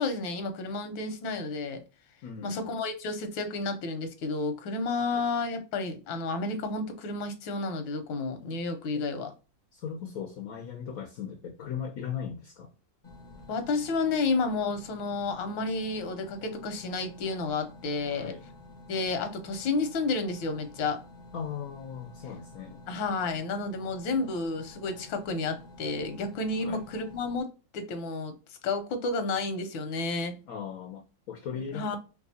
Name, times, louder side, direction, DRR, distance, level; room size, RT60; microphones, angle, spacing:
voice 1, 0.0-1.8 2.4-9.3 13.5-18.3 18.9-21.0 22.9-27.5 27.7-28.3 28.6-30.3 31.5-32.0, left 3 dB, 85° left, 1.5 m, -31 dB
voice 2, 2.2-2.8 5.0-5.2 8.9-9.0 9.7-12.7 18.1-18.4 21.3-22.9 26.6-26.8 30.5-32.0, left 7 dB, 70° left, 0.8 m, -38 dB
sound 1, 13.0-27.4, left 2 dB, 50° left, 0.5 m, -50 dB
4.6 x 2.4 x 2.7 m
omnidirectional pair, 2.0 m